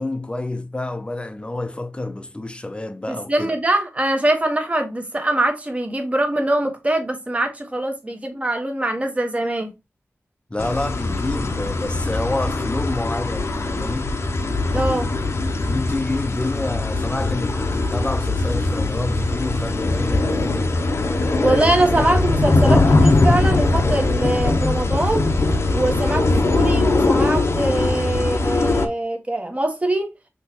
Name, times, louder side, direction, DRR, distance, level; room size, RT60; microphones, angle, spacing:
voice 1, 0.0-3.5 10.5-14.2 15.6-20.3, left 2 dB, 20° left, 0.6 m, -28 dB
voice 2, 3.1-9.7 14.7-15.1 21.4-25.3 25.7-30.1, right 1 dB, 25° right, 1.1 m, -23 dB
sound 1, 10.6-28.9, left 2 dB, 60° left, 0.7 m, -21 dB
5.9 x 3.0 x 2.8 m
wide cardioid pair, 90°, 5 cm